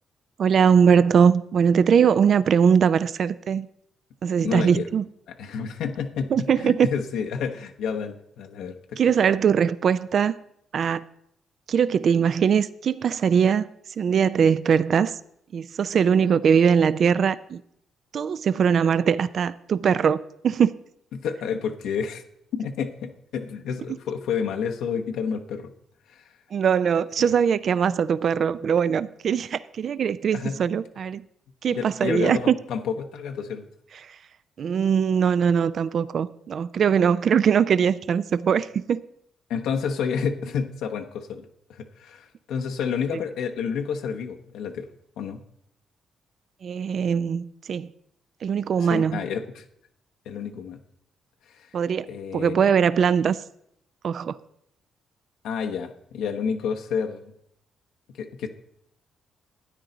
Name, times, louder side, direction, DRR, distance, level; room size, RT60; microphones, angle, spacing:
voice 1, 0.4-3.7 4.2-5.0 6.3-6.9 9.0-10.4 10.7-11.0 11.7-13.7 14.0-15.2 15.5-17.6 18.1-20.7 26.5-31.2 31.6-32.5 34.0-34.2 34.6-39.0 43.1-43.2 46.6-47.9 48.4-49.3 51.7-52.1 52.3-53.4 54.0-54.4, right 7 dB, 55° right, 0.4 m, -21 dB
voice 2, 4.4-4.9 5.4-9.0 21.1-22.2 22.5-25.7 26.1-26.3 27.2-27.3 30.3-30.6 31.7-33.7 39.5-44.9 45.2-45.4 48.8-49.6 50.3-50.8 51.5-51.7 52.1-52.5 55.4-57.2 58.2-58.5, left 6 dB, 85° left, 0.9 m, -30 dB
13.0 x 9.3 x 3.9 m
cardioid pair, 90°, 0 cm